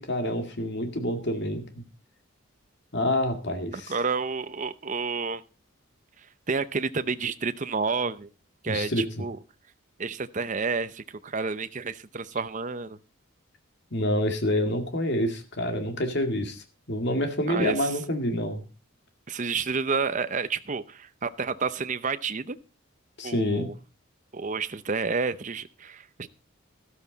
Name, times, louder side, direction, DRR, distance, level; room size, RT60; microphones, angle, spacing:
voice 1, 0.0-1.8 2.9-3.9 8.7-9.0 13.9-18.6 23.2-23.7, left 1 dB, 55° left, 6 dB, 2.2 m, -27 dB
voice 2, 3.7-5.4 6.5-8.3 8.6-9.4 10.0-13.0 17.5-17.9 19.3-22.6 23.2-23.7 24.3-26.3, right 4 dB, 35° right, 12 dB, 0.6 m, -30 dB
13.0 x 12.5 x 4.0 m, 0.32 s
head